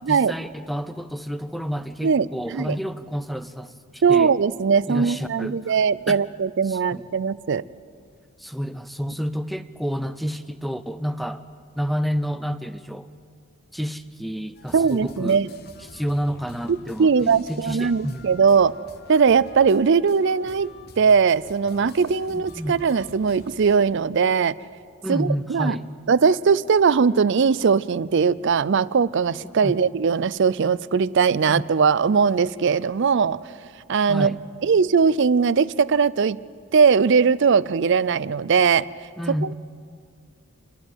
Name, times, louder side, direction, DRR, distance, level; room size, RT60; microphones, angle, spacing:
voice 1, 0.1-4.4 4.9-5.7 6.1-6.2 6.6-7.0 8.4-11.5 11.7-13.1 13.7-15.4 15.8-18.3 22.3-22.8 25.0-25.9 29.4-29.8 31.5-31.7 34.1-34.4 39.2-39.5, equal, ahead, 12 dB, 0.5 m, -30 dB
voice 2, 2.0-2.8 4.0-7.6 14.7-15.5 17.0-18.7 19.1-20.7 21.0-24.6 25.1-25.8 26.1-33.4 33.9-34.4 34.6-36.4 36.7-38.9, right 5 dB, 55° right, 19 dB, 0.4 m, -20 dB
sound 1, 14.6-23.8, left 3 dB, 45° left, 1.1 m, -47 dB
27.5 x 11.5 x 9.2 m, 2.2 s
head